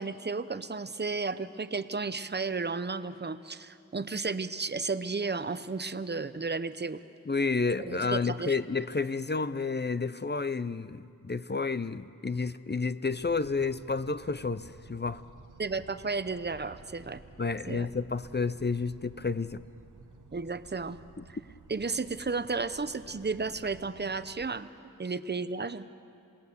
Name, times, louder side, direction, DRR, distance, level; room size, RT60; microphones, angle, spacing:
voice 1, 0.0-7.0 7.9-8.6 15.6-17.2 17.7-17.9 20.3-21.0 21.7-24.7 25.0-25.9, right 4 dB, 30° right, 13 dB, 0.7 m, -33 dB
voice 2, 7.3-15.2 17.4-19.6 21.2-21.3, left 4 dB, 30° left, 14 dB, 0.5 m, -30 dB
sound 1, 13.1-24.5, right 4 dB, 65° right, 1.1 m, -54 dB
28.0 x 18.0 x 7.0 m, 2.5 s
wide cardioid pair, 55°, 33 cm